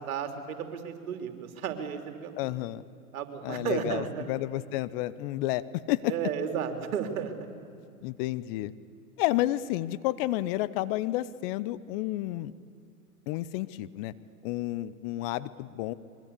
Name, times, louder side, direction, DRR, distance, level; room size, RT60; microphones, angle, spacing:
voice 1, 0.0-2.5 3.1-4.3 6.1-7.3, right 8 dB, 65° right, 6 dB, 3.4 m, -33 dB
voice 2, 2.3-2.8 3.4-6.3 8.0-8.7 9.2-12.5 13.3-14.1 14.4-15.9, left 15 dB, 40° left, 16 dB, 0.8 m, -31 dB
25.0 x 23.0 x 8.4 m, 2.5 s
hypercardioid pair, 110°, 45 cm